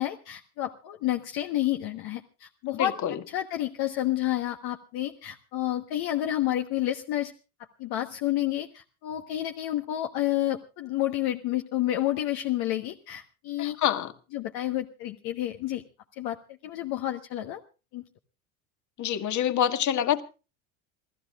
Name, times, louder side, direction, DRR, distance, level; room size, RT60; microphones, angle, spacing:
voice 1, 0.0-2.9 3.3-7.3 7.8-13.8 14.3-15.8 16.2-17.6 17.9-18.0, left 13 dB, 60° left, 1.3 m, -30 dB
voice 2, 2.7-3.2 13.6-14.1 19.0-20.2, left 10 dB, 40° left, 1.7 m, -26 dB
27.5 x 15.5 x 2.4 m
supercardioid pair, 95°, 43 cm